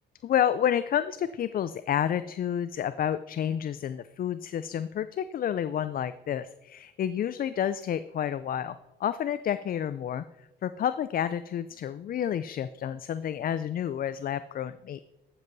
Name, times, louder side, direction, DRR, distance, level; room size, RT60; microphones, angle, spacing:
voice 1, 0.2-10.2 10.6-15.0, left 9 dB, 45° left, 13 dB, 0.4 m, -30 dB
13.0 x 7.2 x 4.0 m, 0.94 s
cardioid pair, 90°, 20 cm